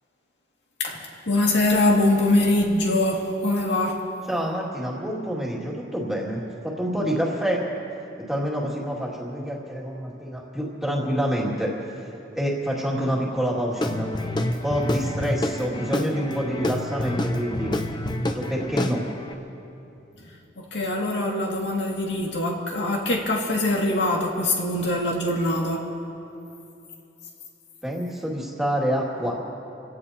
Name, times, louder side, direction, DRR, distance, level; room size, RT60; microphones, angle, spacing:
voice 1, 0.8-4.0 20.6-25.8, left 1 dB, 80° left, -2 dB, 2.2 m, -23 dB
voice 2, 4.3-7.6 8.2-14.1 14.6-17.7 18.3-19.0 27.8-29.3, equal, ahead, -4 dB, 2.3 m, -27 dB
Guitar / Drum, 13.8-19.3, left 1 dB, 25° left, 0.7 m, -28 dB
29.0 x 17.0 x 2.9 m, 2.8 s
head